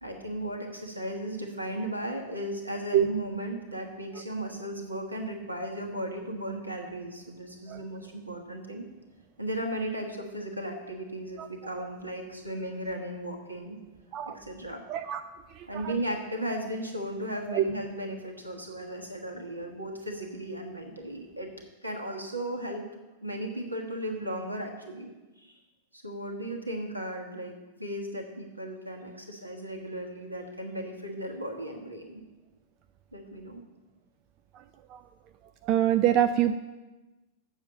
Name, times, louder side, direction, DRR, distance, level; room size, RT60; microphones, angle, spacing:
voice 1, 0.0-8.8 9.4-13.8 14.2-14.8 15.7-21.5 21.8-22.9 23.2-25.1 25.4-25.6 25.9-32.2 33.1-33.6, right 1 dB, 85° right, 2 dB, 1.4 m, -36 dB
voice 2, 14.9-15.2 15.8-15.9 17.5-17.6 34.9-35.0 35.7-36.6, right 11 dB, 40° right, 10 dB, 0.4 m, -24 dB
7.2 x 6.9 x 7.5 m, 1.1 s
figure-of-eight pair, 90°, 0 cm